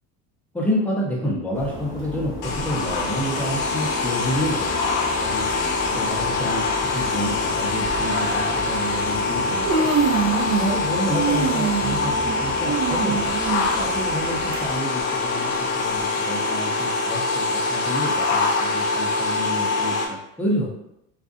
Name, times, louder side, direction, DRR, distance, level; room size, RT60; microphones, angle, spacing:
voice 1, 0.5-5.5 5.9-9.9 10.3-13.3 13.7-20.7, equal, 5° left, -4 dB, 0.5 m, -29 dB
sound 1, 1.5-14.8, equal, 20° right, 1.3 m, -36 dB
sound 2, 2.4-20.1, left 3 dB, 70° left, 0.6 m, -24 dB
Human voice, 5.8-6.1 7.1-7.2 7.8-8.0 9.0-9.1 9.4-10.8 11.1-14.6 15.0-15.1 15.9-16.0, right 6 dB, 85° right, 0.7 m, -25 dB
2.5 x 2.3 x 2.4 m, 0.82 s
cardioid pair, 130°, 35 cm